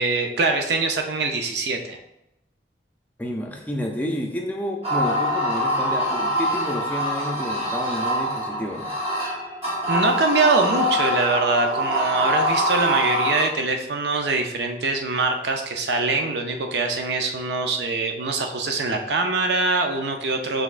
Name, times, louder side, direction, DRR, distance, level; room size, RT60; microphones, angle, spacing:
voice 1, 0.0-2.0 9.9-20.6, right 3 dB, 75° right, 4 dB, 0.6 m, -23 dB
voice 2, 3.2-8.9, equal, 10° left, 1 dB, 0.5 m, -30 dB
sound 1, 4.8-13.5, equal, 35° right, 1.0 m, -24 dB
5.1 x 3.5 x 2.5 m, 0.87 s
head